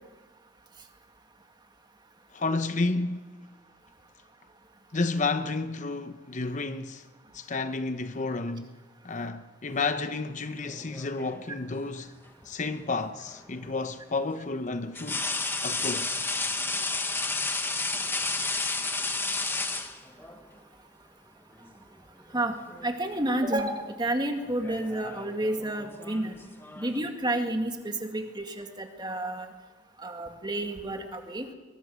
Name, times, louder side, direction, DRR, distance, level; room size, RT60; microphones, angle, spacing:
voice 1, 2.3-3.3 4.9-7.0 7.3-8.7 9.0-12.1 12.5-15.2 15.6-16.2, left 3 dB, 40° left, 0.8 m, -31 dB
sound 1, 10.6-11.5 13.3-13.4 14.9-20.4 21.6-21.8 22.2-23.0 23.2-23.6 24.5-27.1, left 3 dB, 10° left, 1.2 m, -32 dB
voice 2, 22.8-26.4 26.8-29.5 30.0-31.5, right 1 dB, 25° right, 2.1 m, -30 dB
23.0 x 21.5 x 6.3 m
head